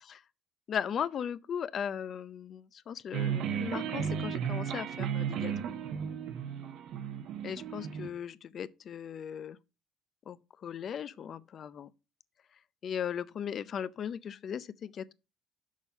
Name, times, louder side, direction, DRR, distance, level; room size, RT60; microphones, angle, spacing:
voice 1, 0.7-5.5 7.4-9.6 10.3-11.9 12.8-15.1, left 8 dB, 45° left, 0.5 m, -37 dB
sound 1, 3.1-8.1, right 8 dB, 70° right, 0.9 m, -34 dB
6.4 x 5.5 x 5.4 m
cardioid pair, 120°, 0 cm